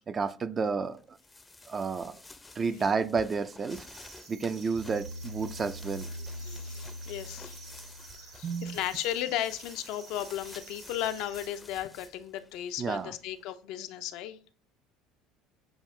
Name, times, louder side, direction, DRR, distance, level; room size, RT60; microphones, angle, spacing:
voice 1, 0.1-1.2 1.7-2.2 2.6-3.9 4.3-6.1 6.5-6.6 8.4-8.8 12.8-13.1, right 5 dB, 35° right, 0.4 m, -31 dB
sound 1, 0.9-13.5, left 2 dB, 15° left, 0.5 m, -52 dB
sound 2, 3.7-11.5, right 5 dB, 60° right, 1.3 m, -52 dB
sound 3, 4.7-8.8, equal, 80° right, 1.3 m, -43 dB
voice 2, 6.4-7.6 8.0-14.4, left 12 dB, 70° left, 0.5 m, -35 dB
7.0 x 2.4 x 3.1 m
supercardioid pair, 90°, 0 cm